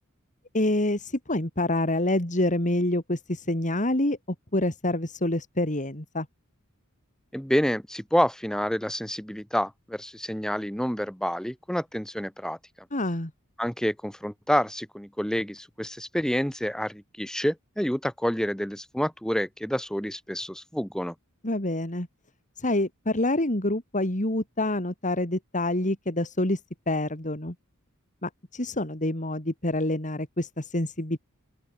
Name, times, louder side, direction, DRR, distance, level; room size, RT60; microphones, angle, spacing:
voice 1, 0.5-4.2 4.5-6.3 12.9-13.3 21.4-22.1 22.6-26.6 26.9-27.5 28.2-31.2, left 1 dB, 35° left, 3.6 m, -27 dB
voice 2, 7.3-12.6 13.6-21.1, equal, 5° left, 2.1 m, -28 dB
open air
head